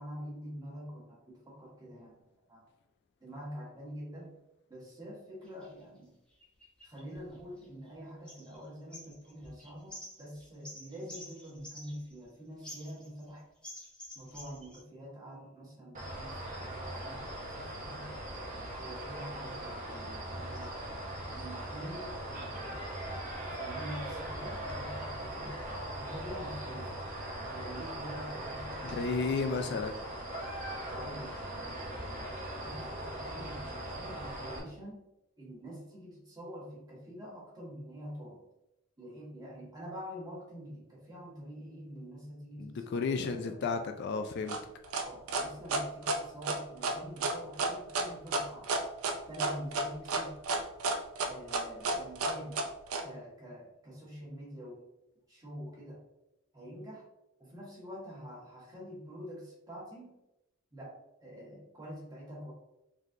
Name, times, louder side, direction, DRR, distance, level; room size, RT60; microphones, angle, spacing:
voice 1, 0.0-2.1 2.5-2.6 3.2-4.3 4.7-6.1 6.8-13.5 14.1-18.2 18.8-20.8 21.3-23.2 23.5-25.6 26.0-26.9 27.5-29.8 30.9-35.0 35.4-38.4 39.0-43.6 45.0-48.8 49.3-50.3 51.2-52.6 53.0-54.8 55.3-56.0 56.5-57.0 57.4-60.1 60.7-60.9 61.2-62.5, equal, 20° right, 1.3 m, -46 dB
sound 1, 5.5-5.7 6.4-7.9 8.3-8.6 8.9-12.3 12.6-13.3 13.6-14.8, left 1 dB, 5° left, 0.8 m, -49 dB
sound 2, 15.9-34.6, right 1 dB, 40° right, 0.8 m, -40 dB
voice 2, 28.8-30.0 42.6-44.6, left 4 dB, 55° left, 0.3 m, -33 dB
sound 3, 44.5-53.0, right 3 dB, 85° right, 0.5 m, -31 dB
4.0 x 3.2 x 2.6 m
head